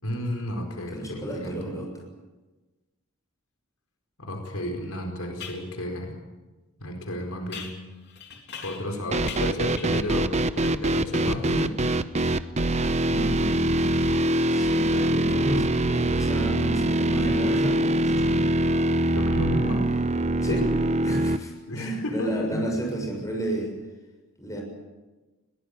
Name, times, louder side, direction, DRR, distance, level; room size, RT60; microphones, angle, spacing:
voice 1, 0.0-1.6 4.2-6.1 6.8-7.7 8.6-11.7 19.1-19.9 20.5-20.7 21.7-22.7, left 1 dB, 80° left, 3 dB, 4.7 m, -32 dB
voice 2, 0.9-1.9 13.0-13.9 14.5-18.4 20.4-20.6 21.0-23.7 24.4-24.6, right 1 dB, 15° left, 1 dB, 6.6 m, -32 dB
sound 1, 4.4-4.5 5.4-5.7 7.5-9.0 9.3-10.2, left 6 dB, 55° left, 3.5 m, -41 dB
sound 2, 9.1-21.4, right 1 dB, 30° right, 0.8 m, -23 dB
21.5 x 18.5 x 9.8 m, 1.2 s
head